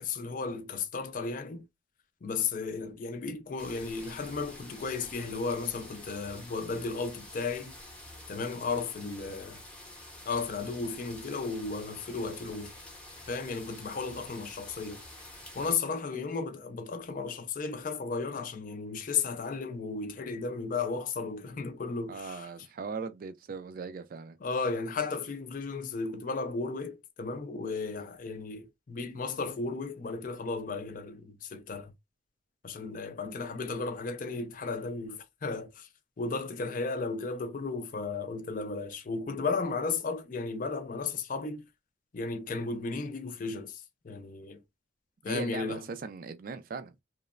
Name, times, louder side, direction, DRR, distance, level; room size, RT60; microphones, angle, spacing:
voice 1, 0.0-1.7 2.2-7.7 8.3-9.6 10.3-12.7 13.3-15.0 15.5-22.5 24.4-31.9 32.6-35.9 36.2-41.6 42.1-44.6 45.2-45.8, left 4 dB, 40° left, 0.4 m, -34 dB
sound 1, 3.6-15.8, left 1 dB, 5° left, 0.7 m, -48 dB
voice 2, 22.1-24.4 33.2-33.4 45.3-46.9, right 4 dB, 45° right, 0.3 m, -39 dB
3.0 x 2.0 x 2.3 m
head